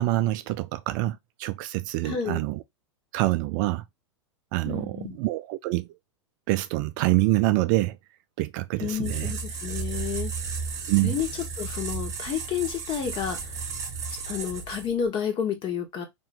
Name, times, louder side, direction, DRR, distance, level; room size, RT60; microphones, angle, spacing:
voice 1, 0.0-2.6 3.1-3.8 4.5-5.9 6.5-8.0 8.4-9.3 10.9-11.2, right 18 dB, 40° right, 0.4 m, -26 dB
voice 2, 2.0-2.4 4.6-5.2 8.8-10.3 11.0-11.3 11.6-13.4 14.3-16.1, left 8 dB, 30° left, 1.6 m, -30 dB
sound 1, 9.0-15.1, right 5 dB, 25° right, 1.5 m, -34 dB
4.3 x 3.0 x 3.6 m
figure-of-eight pair, 95°, 16 cm